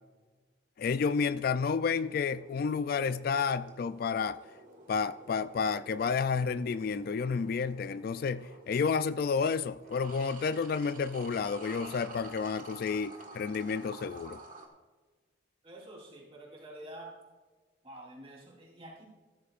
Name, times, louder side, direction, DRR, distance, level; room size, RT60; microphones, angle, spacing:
voice 1, 0.8-4.4 4.9-14.4, left 5 dB, 50° left, 0.3 m, -30 dB
sound 1, 0.8-14.7, right 2 dB, 45° right, 1.5 m, -51 dB
voice 2, 15.6-17.1 17.8-19.0, right 1 dB, 30° right, 3.4 m, -48 dB
14.5 x 13.5 x 2.5 m
head